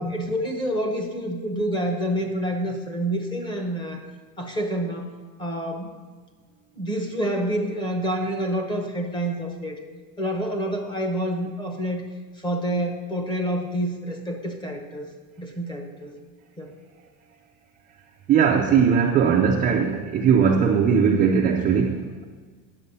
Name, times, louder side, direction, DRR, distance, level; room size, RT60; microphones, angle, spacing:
voice 1, 0.0-4.0 4.4-5.1 5.4-5.9 6.8-9.8 10.2-12.0 12.4-15.1 15.4-16.1 16.6-16.7, right 1 dB, 10° left, 3 dB, 0.9 m, -28 dB
voice 2, 18.3-22.3, right 6 dB, 20° right, 0 dB, 0.4 m, -19 dB
9.7 x 7.4 x 5.4 m, 1.5 s
cardioid pair, 170°, 38 cm